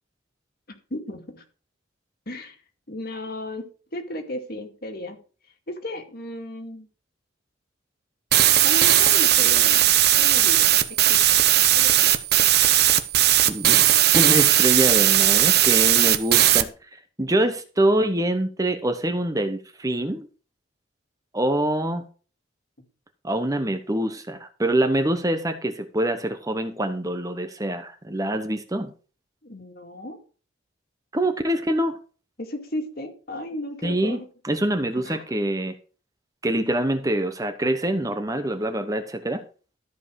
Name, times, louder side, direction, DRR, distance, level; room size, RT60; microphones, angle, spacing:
voice 1, 0.9-1.4 2.3-2.6 2.9-3.7 3.9-5.2 5.7-6.9 8.6-11.2 11.7-12.1 29.4-30.2 32.4-34.3 34.9-35.2, left 1 dB, 50° left, 2.3 m, -34 dB
sound 1, 8.3-16.6, right 12 dB, 55° right, 0.9 m, -18 dB
voice 2, 13.5-13.9 14.1-16.7 17.2-20.3 21.3-22.0 23.2-28.9 31.1-32.0 33.8-35.7 36.4-39.4, right 1 dB, 15° right, 1.0 m, -25 dB
13.5 x 5.4 x 6.4 m
head